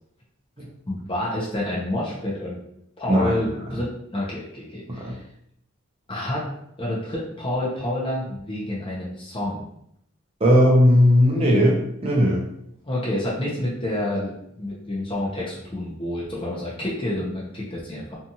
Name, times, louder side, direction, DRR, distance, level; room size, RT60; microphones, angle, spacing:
voice 1, 0.9-2.6 3.0-5.2 6.1-6.4 6.8-9.6 12.9-18.1, left 1 dB, 25° left, -6 dB, 0.6 m, -28 dB
voice 2, 3.1-3.4 4.9-5.2 10.4-12.4, equal, 25° right, -3 dB, 0.6 m, -17 dB
2.7 x 2.4 x 2.7 m, 0.74 s
head